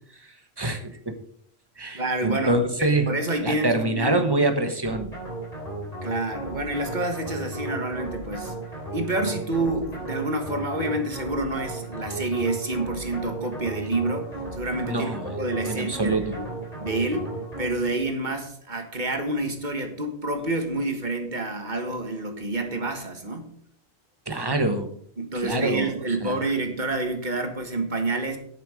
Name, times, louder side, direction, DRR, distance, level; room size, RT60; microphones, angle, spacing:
voice 1, 0.2-1.1 1.8-3.1 3.4-5.1 14.9-15.3 15.7-16.4 24.3-24.9 25.3-25.9 26.2-26.4, right 2 dB, 25° right, 7 dB, 1.2 m, -25 dB
voice 2, 1.9-4.3 6.0-8.5 8.9-16.5 16.8-17.3 17.6-23.5 25.2-28.4, right 2 dB, 45° right, 5 dB, 1.7 m, -28 dB
sound 1, 4.8-18.0, right 2 dB, 35° left, 4.1 m, -35 dB
9.9 x 8.8 x 5.0 m, 0.66 s
omnidirectional pair, 1.1 m